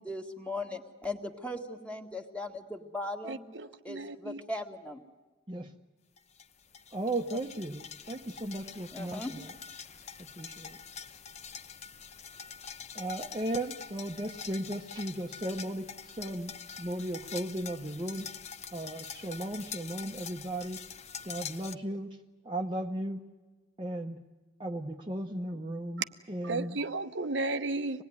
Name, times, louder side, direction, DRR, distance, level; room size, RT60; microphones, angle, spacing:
voice 1, 0.0-3.4 3.8-5.0 8.9-9.3, left 2 dB, 5° left, 3 dB, 1.8 m, -38 dB
voice 2, 3.2-4.4 26.4-28.0, right 2 dB, 70° right, 7 dB, 0.9 m, -34 dB
sound 1, 6.2-21.7, left 7 dB, 35° left, 0.9 m, -45 dB
voice 3, 6.9-9.6 10.2-10.8 12.9-18.3 18.7-20.8 21.2-22.1 22.4-23.3 23.8-24.2 24.6-26.8, right 1 dB, 25° right, 1 dB, 0.9 m, -36 dB
26.0 x 19.5 x 9.6 m, 1.3 s
head